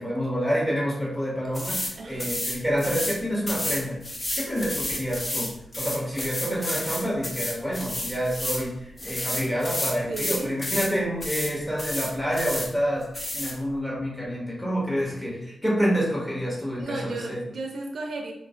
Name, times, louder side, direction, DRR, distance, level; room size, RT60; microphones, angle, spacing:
voice 1, 0.0-4.0 4.3-5.5 5.8-17.4, equal, 5° left, -4 dB, 1.1 m, -28 dB
sound 1, 1.5-1.9 2.2-3.2 3.5-8.6 9.0-10.9 11.2-11.5 11.8-12.7 13.1-13.5, left 1 dB, 30° left, 0.6 m, -31 dB
voice 2, 2.0-2.4 10.1-10.5 16.8-18.3, right 2 dB, 75° right, 1 dB, 0.4 m, -35 dB
2.4 x 2.0 x 3.6 m, 0.82 s
cardioid pair, 85°, 0 cm